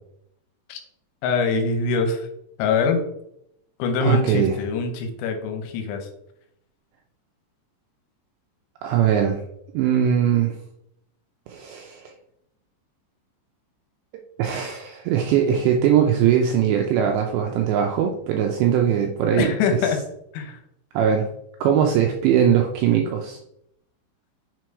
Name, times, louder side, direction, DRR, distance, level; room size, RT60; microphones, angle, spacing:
voice 1, 1.2-2.3 2.6-3.0 3.8-6.1 19.4-20.0 20.3-20.6, left 5 dB, 80° left, 6 dB, 3.2 m, -23 dB
voice 2, 4.0-4.6 8.8-9.4 9.7-10.6 11.5-12.1 14.4-19.5 19.8-19.9 20.9-21.3 21.6-23.4, right 9 dB, 85° right, 2 dB, 2.5 m, -20 dB
6.9 x 4.6 x 4.7 m, 0.76 s
omnidirectional pair, 5.7 m